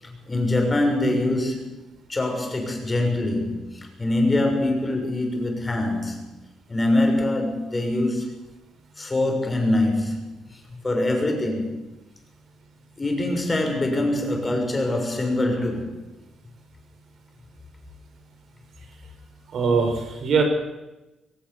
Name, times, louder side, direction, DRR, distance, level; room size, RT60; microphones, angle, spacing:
voice 1, 0.0-1.8 2.1-6.3 6.7-8.3 9.0-10.2 10.7-11.7 13.0-15.9, left 1 dB, 25° left, 3 dB, 6.7 m, -24 dB
voice 2, 19.5-20.4, right 5 dB, 60° right, 4 dB, 6.2 m, -21 dB
22.0 x 19.0 x 7.2 m, 1.0 s
cardioid pair, 90°, 0 cm